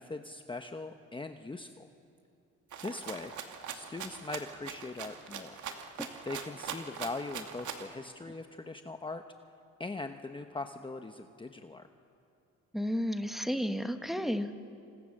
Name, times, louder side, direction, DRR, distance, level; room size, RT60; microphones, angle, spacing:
voice 1, 0.0-1.9 2.8-3.3 3.7-5.6 6.2-9.2 9.8-11.9, left 3 dB, 15° left, 6 dB, 1.1 m, -41 dB
Rattle (instrument), 2.7-7.9, right 7 dB, 75° right, 2.4 m, -42 dB
voice 2, 12.7-14.6, equal, ahead, 7 dB, 1.5 m, -32 dB
28.0 x 27.0 x 6.6 m, 2.6 s
cardioid pair, 90°, 30 cm